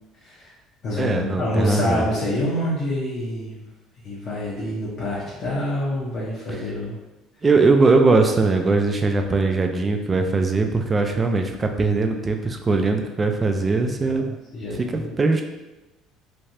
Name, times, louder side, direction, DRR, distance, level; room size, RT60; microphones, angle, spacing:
voice 1, 0.2-0.5 0.8-3.6 4.0-7.0 13.8-15.1, left 1 dB, 50° left, -7 dB, 0.8 m, -27 dB
voice 2, 1.0-2.0 7.4-14.3 14.9-15.4, right 3 dB, 20° right, 5 dB, 0.3 m, -20 dB
3.2 x 2.4 x 2.7 m, 1.1 s
cardioid pair, 125°, 0 cm